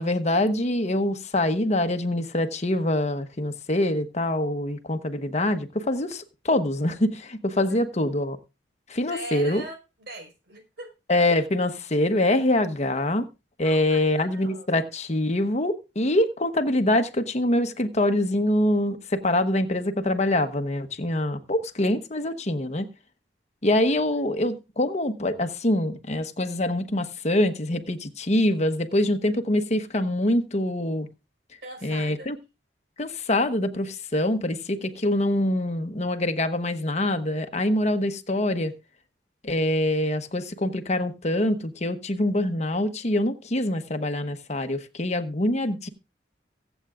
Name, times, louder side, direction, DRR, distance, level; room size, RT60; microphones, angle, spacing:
voice 1, 0.0-8.4 8.9-9.6 11.1-13.3 13.6-22.9 23.6-31.1 31.8-32.3 33.0-38.7 39.4-45.9, left 1 dB, 40° left, 1.1 m, -24 dB
voice 2, 9.1-10.9 13.6-14.7 23.8-24.2 31.6-32.3, right 2 dB, 65° right, 4.9 m, -41 dB
23.0 x 8.1 x 2.4 m
head